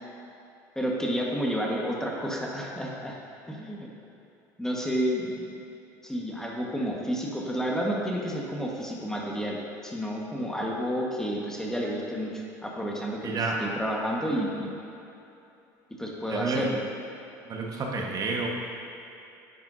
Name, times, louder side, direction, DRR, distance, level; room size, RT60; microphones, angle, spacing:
voice 1, 0.7-3.2 3.5-3.9 4.6-5.6 6.0-9.6 9.8-14.7 16.0-16.8, equal, 5° left, -2 dB, 1.4 m, -30 dB
voice 2, 13.2-13.6 16.3-16.6 17.5-18.5, right 4 dB, 45° right, -1 dB, 1.4 m, -30 dB
10.5 x 9.4 x 2.7 m, 2.7 s
supercardioid pair, 85°, 9 cm